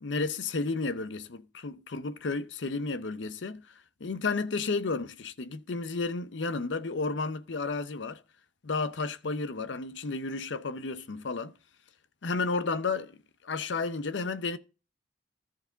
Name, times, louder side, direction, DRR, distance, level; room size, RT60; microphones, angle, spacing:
voice 1, 0.0-3.6 4.0-8.2 8.6-11.5 12.2-13.2 13.4-14.6, left 3 dB, 80° left, 0.7 m, -32 dB
14.0 x 4.7 x 3.9 m
head